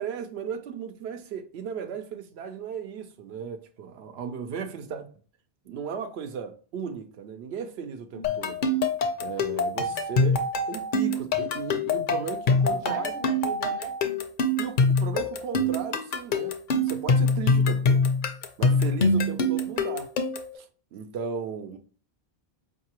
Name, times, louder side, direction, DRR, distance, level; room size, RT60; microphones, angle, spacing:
voice 1, 0.0-5.1 5.6-8.6 9.2-13.1 14.6-16.6 16.8-18.1 18.6-20.1 20.5-20.7 20.9-21.8, right 6 dB, 85° right, 0.8 m, -35 dB
voice 2, 8.1-8.5 12.6-13.9, right 4 dB, 45° right, 0.6 m, -39 dB
sound 1, 8.2-20.6, left 2 dB, 60° left, 0.6 m, -24 dB
4.6 x 2.7 x 2.8 m
omnidirectional pair, 1.0 m